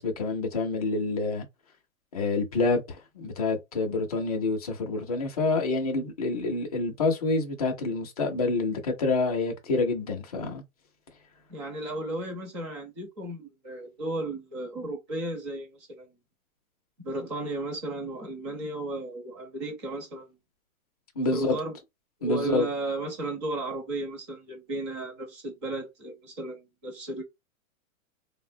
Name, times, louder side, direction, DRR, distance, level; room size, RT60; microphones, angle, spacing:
voice 1, 0.0-1.4 2.1-10.6 21.2-21.6 22.2-22.7, left 3 dB, 30° left, 0.5 m, -27 dB
voice 2, 11.5-16.1 17.0-20.4 21.3-21.8 22.2-27.2, right 2 dB, 20° right, 0.7 m, -34 dB
3.4 x 2.1 x 2.6 m
hypercardioid pair, 175°, 42 cm